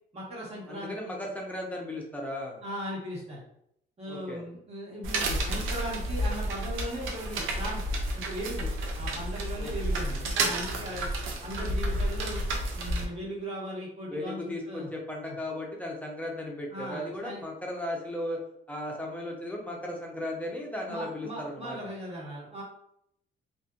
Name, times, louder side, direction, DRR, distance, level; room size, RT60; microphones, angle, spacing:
voice 1, 0.1-1.1 2.6-3.4 4.0-7.8 8.1-11.1 11.4-12.4 12.7-14.9 15.2-15.3 16.7-17.4 20.9-22.6, equal, 30° right, -5 dB, 1.3 m, -38 dB
voice 2, 0.7-2.6 4.1-4.4 9.6-9.7 14.1-18.4 18.7-21.8, left 1 dB, 5° left, -2 dB, 0.6 m, -36 dB
sound 1, 5.0-13.0, right 1 dB, 85° right, 0.5 m, -31 dB
2.6 x 2.5 x 2.4 m, 0.73 s
cardioid pair, 90°, 20 cm